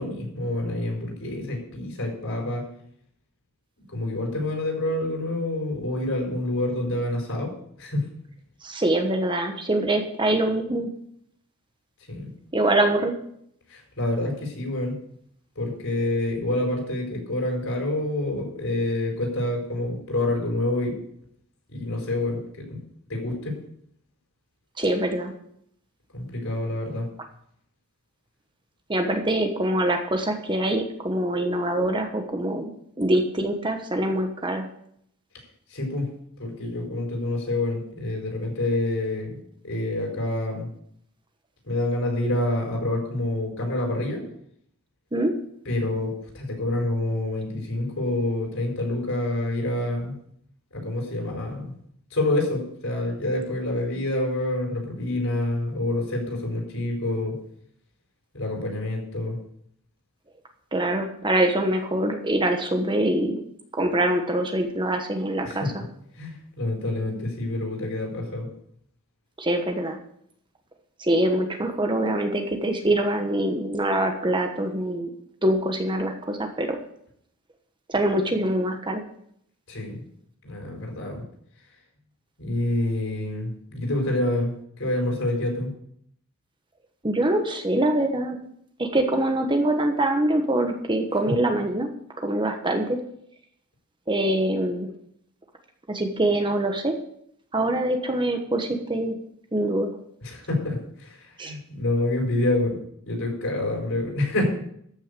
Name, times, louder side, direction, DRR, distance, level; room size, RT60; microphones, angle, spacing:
voice 1, 0.0-2.7 3.9-7.5 7.8-8.1 12.1-12.3 13.7-15.0 15.5-20.9 21.7-22.4 22.7-22.8 23.1-23.6 26.1-27.1 35.7-36.1 36.4-39.4 39.6-40.7 41.6-44.2 45.6-50.2 50.7-51.7 52.1-57.4 58.3-59.4 65.4-65.7 66.1-68.5 79.7-80.0 80.4-81.2 82.4-85.7 100.2-102.8 103.0-104.5, left 1 dB, 65° left, 1 dB, 4.6 m, -27 dB
voice 2, 8.6-10.9 12.5-13.1 24.8-25.3 28.9-32.7 33.0-34.6 45.1-45.3 60.7-63.4 63.8-65.6 69.4-70.0 71.0-75.1 75.4-76.8 77.9-79.0 87.0-88.4 88.8-91.9 92.2-93.0 94.1-94.9 95.9-96.9 97.5-99.2 99.5-99.9 101.4-101.5, right 1 dB, 20° right, 4 dB, 1.2 m, -24 dB
13.5 x 6.5 x 6.8 m, 0.70 s
head